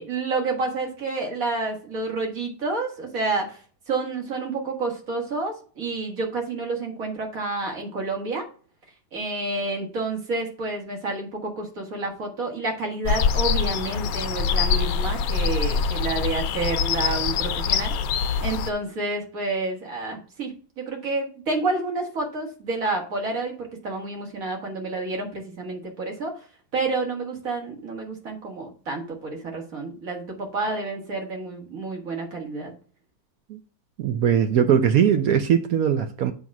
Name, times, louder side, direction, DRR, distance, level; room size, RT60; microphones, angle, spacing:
voice 1, 0.0-3.6 3.9-8.5 9.1-17.9 18.4-26.3 26.7-32.7, right 3 dB, 50° right, 2.1 m, -29 dB
sound 1, 13.0-18.7, left 6 dB, 65° left, 0.9 m, -24 dB
voice 2, 34.0-36.3, right 8 dB, 70° right, 0.8 m, -20 dB
7.5 x 3.5 x 6.0 m
omnidirectional pair, 2.0 m